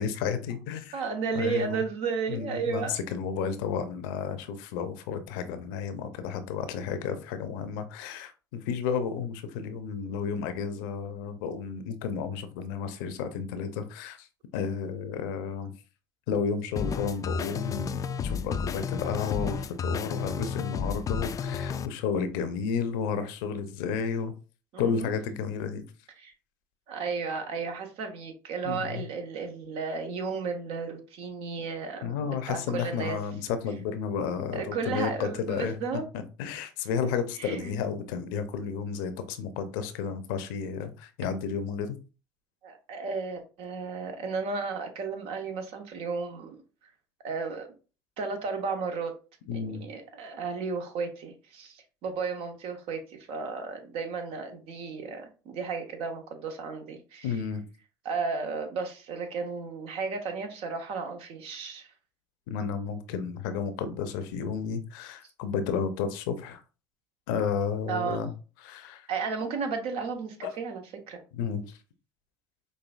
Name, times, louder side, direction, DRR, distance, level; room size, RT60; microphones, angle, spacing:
voice 1, 0.0-0.9 1.3-1.8 2.3-14.3 14.5-15.7 16.3-24.3 24.8-25.8 28.6-29.0 32.0-35.8 36.4-42.0 49.5-49.8 57.2-57.6 62.5-66.6 67.3-68.3 68.6-69.1 70.4-70.5 71.3-71.8, left 6 dB, 75° left, 0.6 m, -32 dB
voice 2, 0.9-3.0 24.7-25.1 26.2-26.3 26.9-33.2 34.5-36.1 37.4-37.7 42.6-46.6 47.2-47.7 48.2-49.1 49.5-57.4 58.0-61.9 67.9-68.2 69.1-71.2, right 5 dB, 65° right, 0.9 m, -33 dB
sound 1, 16.8-21.9, left 6 dB, 30° left, 0.3 m, -32 dB
5.3 x 2.6 x 2.4 m
hypercardioid pair, 65°, 11 cm